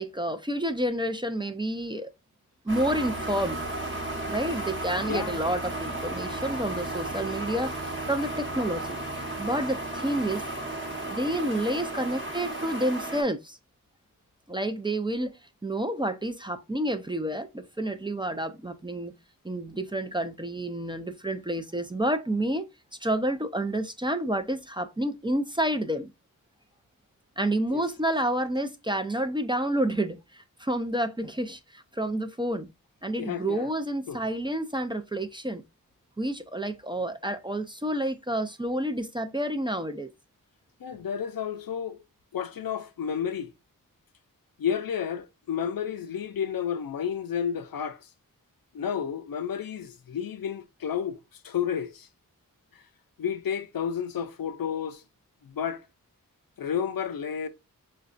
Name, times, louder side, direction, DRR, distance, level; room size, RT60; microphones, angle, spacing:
voice 1, 0.0-2.1 2.6-3.6 4.3-9.0 9.4-10.4 11.0-13.6 14.5-15.3 15.6-19.1 19.4-22.7 23.0-26.1 27.4-32.7 33.0-35.6 36.2-40.1, right 1 dB, 15° right, 0.4 m, -29 dB
sound 1, 2.7-13.2, right 2 dB, 35° right, 0.9 m, -34 dB
voice 2, 5.0-5.4 27.7-27.8 33.2-33.7 34.1-34.2 40.8-42.0 42.3-43.5 44.6-48.1 48.7-52.1 52.7-52.8 53.2-55.0 55.4-55.9 56.6-57.5, left 8 dB, 80° left, 0.5 m, -31 dB
4.7 x 2.2 x 2.4 m
wide cardioid pair, 55°, 35 cm